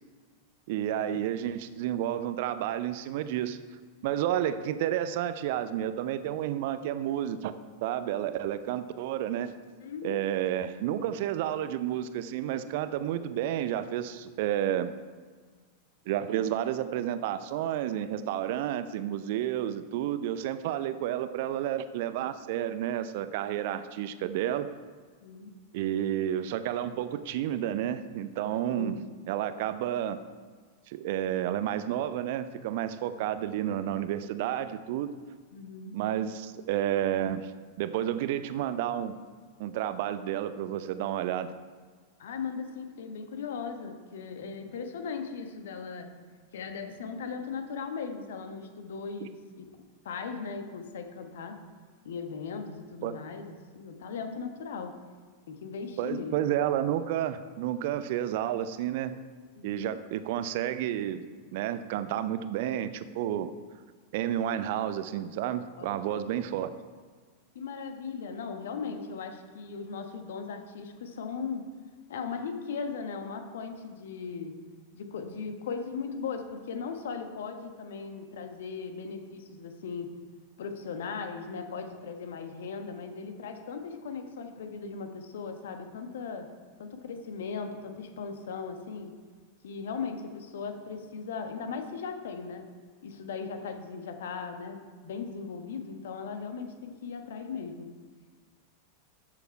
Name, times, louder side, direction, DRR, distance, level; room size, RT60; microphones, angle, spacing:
voice 1, 0.7-3.6 4.0-7.5 7.8-9.5 10.0-14.9 16.1-24.7 25.7-29.0 29.3-30.2 30.9-35.1 35.9-37.5 37.8-39.1 39.6-41.5 49.2-49.3 53.0-53.2 56.0-59.1 59.6-61.2 61.5-63.5 64.1-66.7, right 11 dB, 50° right, 12 dB, 0.6 m, -31 dB
voice 2, 9.8-10.2 25.2-25.5 26.8-27.0 28.6-29.1 33.2-33.3 35.5-35.9 42.2-46.2 46.5-49.7 50.0-51.6 52.0-54.9 55.5-56.5 59.6-59.9 65.8-66.2 67.5-71.6 72.1-74.6 74.9-80.1 80.6-86.5 86.8-89.1 89.6-92.7 93.0-97.9, left 5 dB, 60° left, 7 dB, 1.2 m, -38 dB
13.0 x 7.0 x 4.5 m, 1.5 s
figure-of-eight pair, 90°, 0 cm